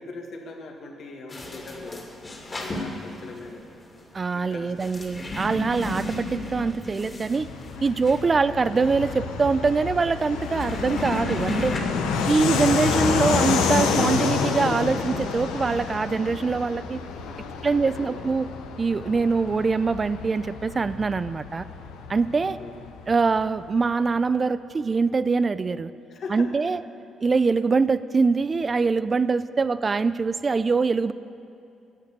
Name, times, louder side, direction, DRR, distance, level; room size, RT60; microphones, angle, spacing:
voice 1, 0.0-2.1 2.5-3.7 4.3-5.0 7.8-8.0 8.2-8.4 11.7-12.3 17.2-18.2 22.6-22.8 26.1-26.7, left 3 dB, 65° left, 2 dB, 1.9 m, -41 dB
sound 1, 1.3-11.8, left 1 dB, 30° left, 2.5 m, -35 dB
voice 2, 4.1-7.5 7.8-11.8 12.3-17.0 17.6-18.5 18.8-21.7 22.1-22.6 23.1-25.9 26.3-26.8 27.2-31.1, right 4 dB, 35° right, 14 dB, 0.4 m, -23 dB
Fixed-wing aircraft airplane, 7.3-23.5, left 5 dB, 85° left, 0.9 m, -29 dB
11.5 x 8.5 x 8.2 m, 2.7 s
supercardioid pair, 60°, 0 cm